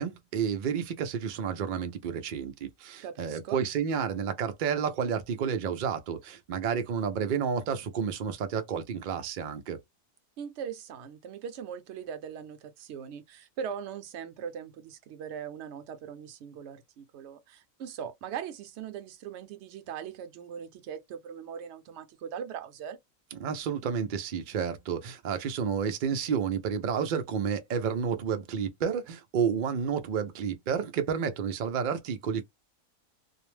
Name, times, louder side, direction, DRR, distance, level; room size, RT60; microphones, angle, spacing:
voice 1, 0.0-9.8 23.3-32.4, right 7 dB, 90° right, 0.4 m, -30 dB
voice 2, 3.0-3.6 10.4-23.0, right 8 dB, 65° right, 0.8 m, -40 dB
2.4 x 2.1 x 3.1 m
omnidirectional pair, 1.4 m